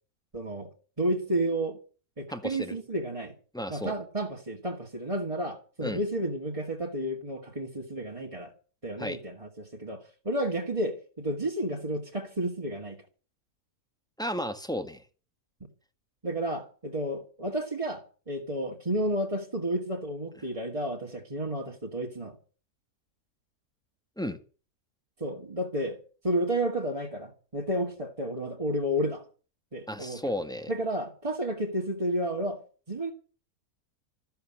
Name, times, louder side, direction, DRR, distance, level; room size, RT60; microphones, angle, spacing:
voice 1, 0.3-0.7 1.0-1.8 2.2-3.3 3.7-8.5 8.8-13.0 16.2-22.3 25.2-26.0 26.2-29.2 29.7-30.3 30.7-32.6 32.9-33.1, right 1 dB, 20° right, 2.1 m, -31 dB
voice 2, 2.3-2.8 3.5-3.9 5.8-6.0 9.0-9.2 14.2-15.0 24.2-24.4 29.9-30.7, equal, 5° left, 1.6 m, -33 dB
14.0 x 12.0 x 7.7 m
omnidirectional pair, 1.6 m